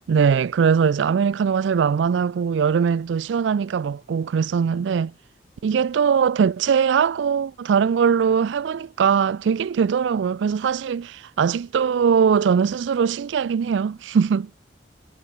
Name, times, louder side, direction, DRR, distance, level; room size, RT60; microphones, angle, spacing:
voice 1, 0.1-5.1 5.6-14.5, right 6 dB, 80° right, 0.4 m, -21 dB
head